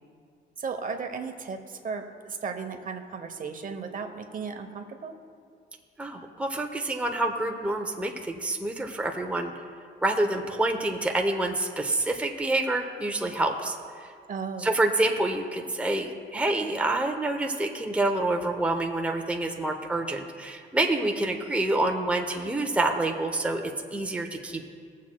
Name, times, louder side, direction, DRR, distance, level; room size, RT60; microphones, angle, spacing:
voice 1, 0.6-5.1 14.3-14.7, right 5 dB, 45° right, 6 dB, 0.9 m, -35 dB
voice 2, 6.0-9.5 10.0-13.8 14.6-24.7, right 2 dB, 5° right, 2 dB, 0.7 m, -27 dB
21.5 x 7.4 x 2.3 m, 2.2 s
cardioid pair, 90°, 20 cm